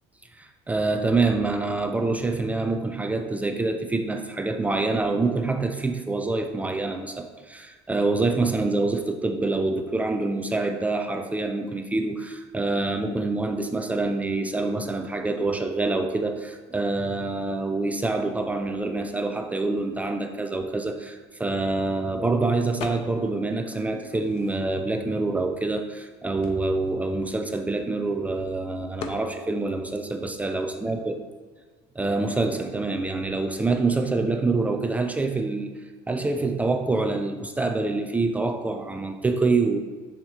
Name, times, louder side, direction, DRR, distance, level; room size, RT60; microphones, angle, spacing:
voice 1, 0.3-31.2 32.0-35.7 36.1-39.8, right 3 dB, 10° right, 5 dB, 0.5 m, -26 dB
sound 1, 22.8-23.4 23.7-25.0 25.6-25.7 25.9-28.1 29.0-29.3, left 5 dB, 55° left, 0.8 m, -41 dB
6.9 x 6.4 x 3.2 m, 1.4 s
supercardioid pair, 115°, 12 cm